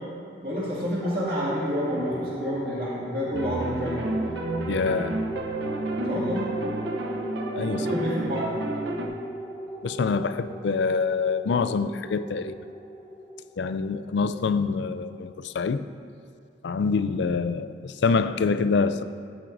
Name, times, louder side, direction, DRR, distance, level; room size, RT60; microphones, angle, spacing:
voice 1, 0.4-4.1 6.0-6.5 7.8-8.5, equal, 50° right, -7 dB, 2.4 m, -29 dB
sound 1, 1.0-15.8, equal, 10° left, 0.8 m, -37 dB
sound 2, 3.3-9.1, right 2 dB, 65° right, 0.8 m, -31 dB
voice 2, 4.7-5.2 7.6-7.9 9.8-12.6 13.6-15.8 16.6-19.0, left 4 dB, 65° left, 12 dB, 0.4 m, -25 dB
12.5 x 8.9 x 2.6 m, 2.5 s
head